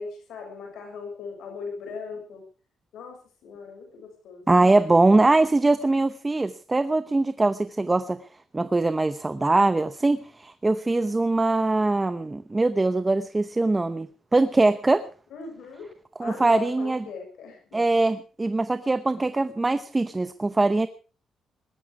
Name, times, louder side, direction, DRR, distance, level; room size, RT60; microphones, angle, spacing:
voice 1, 0.0-2.4 2.9-4.5 15.3-15.9 16.2-17.6, left 5 dB, 90° left, 3 dB, 6.1 m, -38 dB
voice 2, 4.5-8.2 8.5-14.1 14.3-15.0 16.2-17.0 17.7-20.9, right 2 dB, 15° right, 12 dB, 0.8 m, -22 dB
20.0 x 14.0 x 4.8 m, 0.38 s
cardioid pair, 145°, 0 cm